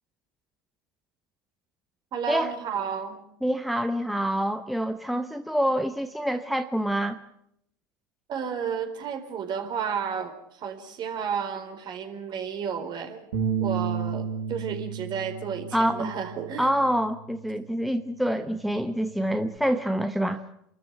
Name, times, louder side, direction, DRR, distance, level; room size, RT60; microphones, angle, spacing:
voice 1, 2.1-3.2 8.3-13.3 13.6-16.7, right 7 dB, 40° right, 7 dB, 4.2 m, -32 dB
voice 2, 3.4-7.2 15.7-16.1 16.6-20.4, equal, ahead, 9 dB, 1.0 m, -26 dB
Bass guitar, 13.3-17.8 18.2-19.6, right 6 dB, 75° right, 6.5 m, -33 dB
28.0 x 13.5 x 9.4 m, 0.75 s
hypercardioid pair, 85°, 11 cm